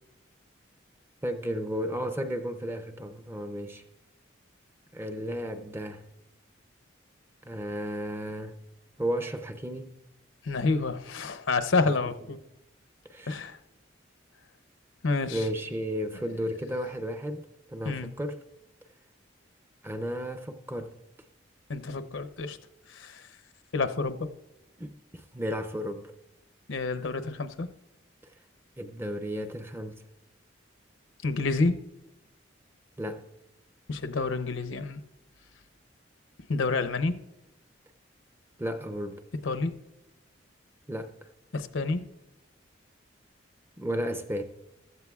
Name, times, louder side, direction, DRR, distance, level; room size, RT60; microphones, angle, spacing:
voice 1, 1.2-3.8 4.9-6.0 7.4-8.6 9.0-10.0 11.9-12.0 13.0-13.4 15.3-18.4 19.8-20.9 24.8-26.1 28.8-30.0 33.0-33.2 38.6-39.2 40.9-41.1 43.8-44.4, equal, 10° right, 0.5 m, -33 dB
voice 2, 10.4-12.4 13.3-13.6 15.0-15.4 17.8-18.1 21.7-22.6 22.9-23.3 23.7-24.3 26.7-27.7 31.2-31.8 33.9-35.0 36.5-37.1 39.4-39.8 41.5-42.0, left 3 dB, 80° left, 0.7 m, -28 dB
15.0 x 13.0 x 2.3 m
head